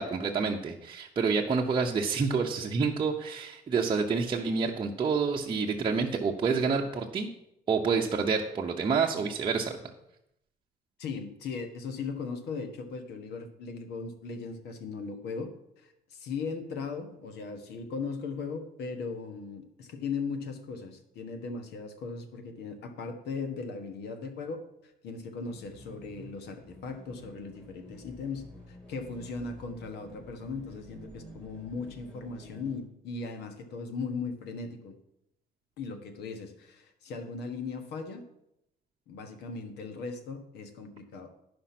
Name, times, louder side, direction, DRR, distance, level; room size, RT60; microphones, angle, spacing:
voice 1, 0.0-7.3 7.7-9.8, right 5 dB, 30° right, -1 dB, 0.8 m, -28 dB
voice 2, 11.0-15.5 15.8-34.9 35.8-38.2 39.1-41.3, left 4 dB, 75° left, 7 dB, 1.4 m, -38 dB
sound 1, 25.5-32.8, equal, 5° left, 2.9 m, -50 dB
11.5 x 5.2 x 5.9 m, 0.81 s
cardioid pair, 110°, 17 cm